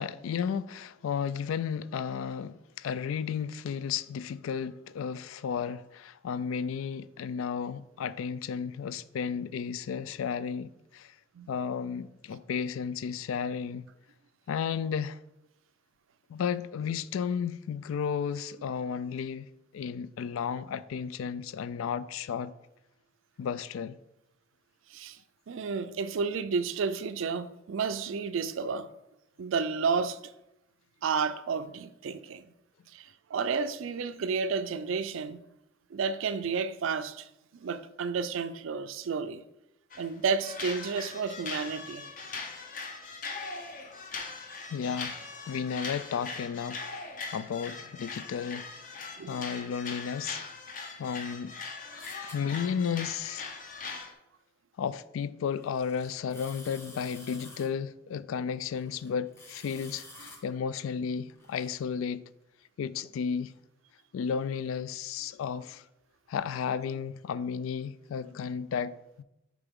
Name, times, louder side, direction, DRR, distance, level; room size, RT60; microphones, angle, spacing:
voice 1, 0.0-11.1 11.5-13.9 14.5-15.2 16.3-19.5 19.7-22.5 23.4-24.0 44.7-45.2 45.5-47.0 47.3-49.0 49.3-50.4 51.0-51.5 52.2-53.5 54.8-62.2 62.8-63.5 64.1-65.8 66.3-69.0, left 7 dB, 90° left, 0.3 m, -33 dB
voice 2, 25.5-28.9 29.4-30.2 31.0-32.5 32.9-35.4 35.9-39.4 40.0-42.0 49.2-49.4, right 5 dB, 80° right, 0.4 m, -31 dB
sound 1, 39.9-40.1 40.4-54.1, left 4 dB, 40° left, 0.7 m, -40 dB
sound 2, 52.0-52.3 55.4-57.7 58.6-60.4 61.0-61.8, left 1 dB, 15° left, 1.0 m, -50 dB
6.8 x 4.8 x 3.6 m
head